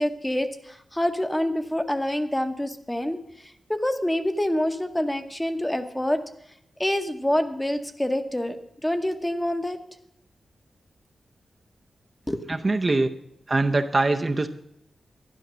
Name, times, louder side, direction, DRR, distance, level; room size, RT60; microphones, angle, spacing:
voice 1, 0.0-6.2 6.8-8.6 8.8-9.8 12.3-12.4, left 1 dB, 10° left, 8 dB, 1.0 m, -26 dB
voice 2, 12.5-13.1 13.5-14.5, right 2 dB, 30° right, 5 dB, 0.7 m, -22 dB
12.0 x 11.0 x 6.2 m, 0.74 s
wide cardioid pair, 120°, 0 cm